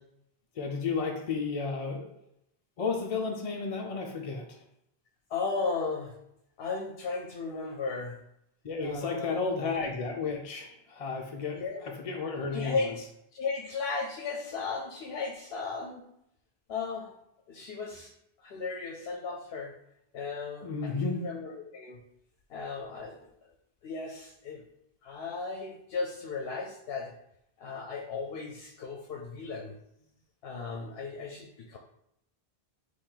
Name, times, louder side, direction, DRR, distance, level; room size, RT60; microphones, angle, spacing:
voice 1, 0.6-2.1 2.8-4.4 8.6-11.6 12.0-12.8 20.6-21.3, left 4 dB, 45° left, 1 dB, 0.5 m, -32 dB
voice 2, 5.3-6.1 6.6-8.2 8.8-9.4 11.5-12.0 12.5-13.0 13.3-16.0 16.7-17.1 17.5-18.1 18.4-19.7 20.1-22.0 22.5-23.1 23.4-23.5 23.8-24.6 25.0-27.1 27.6-29.7 30.4-31.8, left 4 dB, 75° left, 1 dB, 0.8 m, -35 dB
4.4 x 2.9 x 3.8 m, 0.79 s
omnidirectional pair, 1.0 m